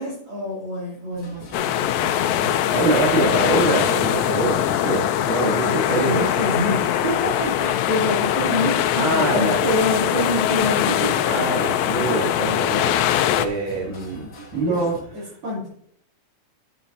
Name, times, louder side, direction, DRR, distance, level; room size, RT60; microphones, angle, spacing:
voice 1, 0.0-2.2 3.2-3.8 5.6-11.2 12.1-12.3 14.7-14.9 15.1-15.7, left 1 dB, 45° right, -9 dB, 4.0 m, -27 dB
sound 1, 1.1-15.0, left 1 dB, 45° left, 1.9 m, -42 dB
sound 2, 1.5-13.5, left 11 dB, 80° left, 1.8 m, -22 dB
voice 2, 2.4-6.2 9.0-9.6 11.3-15.3, right 2 dB, 90° right, -5 dB, 4.3 m, -24 dB
12.0 x 8.2 x 2.8 m, 0.66 s
omnidirectional pair, 3.4 m